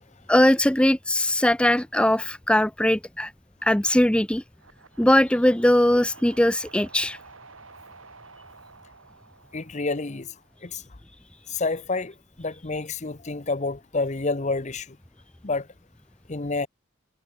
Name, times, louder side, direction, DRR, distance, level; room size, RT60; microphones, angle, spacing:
voice 1, 0.3-3.3 3.6-4.4 5.0-7.2, left 1 dB, 5° left, 0.5 m, -20 dB
sound 1, 4.5-10.7, right 4 dB, 80° right, 5.9 m, -50 dB
voice 2, 9.5-10.3 10.6-10.8 11.5-15.0 15.4-15.7 16.3-16.7, left 3 dB, 35° left, 0.8 m, -29 dB
head